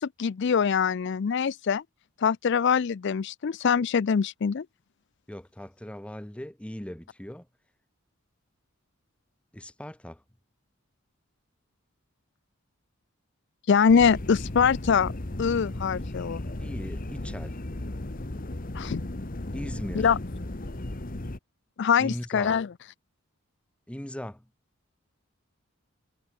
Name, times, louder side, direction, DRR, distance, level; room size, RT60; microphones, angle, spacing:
voice 1, 0.0-1.8 2.2-4.7 13.7-15.1 15.4-16.4 18.7-19.0 19.9-20.2 21.8-22.7, left 6 dB, 55° left, 0.4 m, -23 dB
voice 2, 5.3-7.5 9.5-10.2 16.6-17.6 19.5-20.1 22.0-22.6 23.9-24.4, equal, 5° left, 0.6 m, -39 dB
sound 1, 13.9-21.4, left 1 dB, 40° left, 1.2 m, -35 dB
head